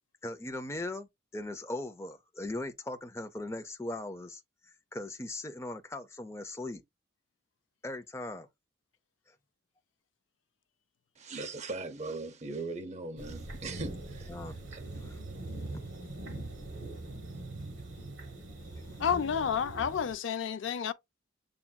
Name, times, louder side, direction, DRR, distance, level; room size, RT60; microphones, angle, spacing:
voice 1, 0.2-4.4 4.9-6.8 7.8-8.5 14.3-14.6 14.9-15.2 15.7-16.1 18.6-18.8, left 2 dB, 15° left, 0.4 m, -39 dB
voice 2, 11.2-14.3 14.7-14.8, right 3 dB, 35° right, 0.6 m, -39 dB
sound 1, 13.2-20.2, right 2 dB, 80° right, 1.0 m, -42 dB
voice 3, 19.0-20.9, left 7 dB, 80° left, 0.4 m, -30 dB
7.0 x 2.6 x 2.2 m
head